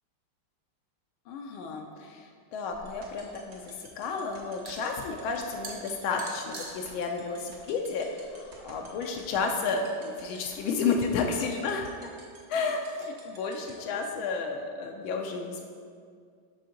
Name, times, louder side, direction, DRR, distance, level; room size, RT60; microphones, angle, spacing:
voice 1, 1.3-12.1 12.5-15.6, left 4 dB, 80° left, 2 dB, 1.4 m, -32 dB
sound 1, 2.7-8.8, right 2 dB, 50° right, 0.4 m, -47 dB
sound 2, 2.9-13.7, right 5 dB, 85° right, 2.0 m, -50 dB
6.5 x 3.6 x 5.7 m, 2.1 s
omnidirectional pair, 2.3 m